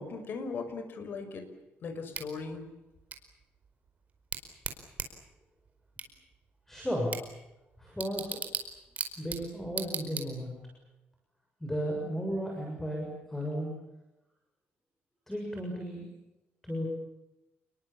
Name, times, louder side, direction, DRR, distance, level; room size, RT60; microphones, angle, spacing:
voice 1, 0.0-1.5 1.8-2.7, left 4 dB, 55° left, 7 dB, 5.8 m, -38 dB
Bicycle / Tick, 2.1-10.7, right 5 dB, 35° right, 4.7 m, -41 dB
voice 2, 6.7-7.1 7.8-8.3 9.2-10.5 11.6-13.7 15.3-16.1 16.6-16.9, equal, 5° left, 1 dB, 6.9 m, -34 dB
29.5 x 22.5 x 7.3 m, 0.97 s
cardioid pair, 140°, 4 cm